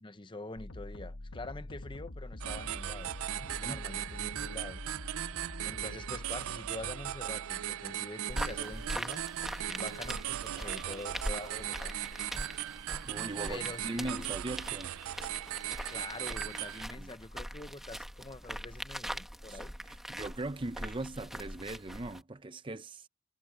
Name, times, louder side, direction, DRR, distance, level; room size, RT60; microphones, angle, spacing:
voice 1, 0.0-3.1 3.5-4.8 5.6-9.2 9.7-12.0 13.5-14.3 15.9-19.7, left 2 dB, 20° left, 0.8 m, -45 dB
sound 1, 0.6-8.3, left 1 dB, 70° left, 1.2 m, -46 dB
sound 2, 2.4-16.9, right 12 dB, 75° right, 0.4 m, -38 dB
voice 2, 3.4-3.8 13.0-14.9 17.0-17.1 19.5-19.6 19.9-23.1, right 2 dB, 25° right, 0.6 m, -40 dB
sound 3, 8.3-22.2, equal, ahead, 1.1 m, -42 dB
head